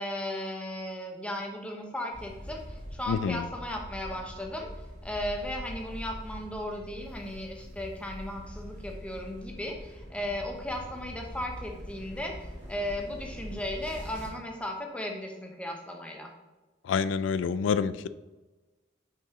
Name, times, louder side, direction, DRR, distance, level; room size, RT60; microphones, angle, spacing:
voice 1, 0.0-4.7 5.0-16.3, left 1 dB, 5° left, 1 dB, 0.7 m, -36 dB
sound 1, 2.1-14.3, equal, 75° right, 1.9 m, -43 dB
voice 2, 3.1-3.4 16.9-18.1, left 6 dB, 90° left, 15 dB, 0.3 m, -27 dB
5.6 x 4.8 x 3.6 m, 1.2 s
head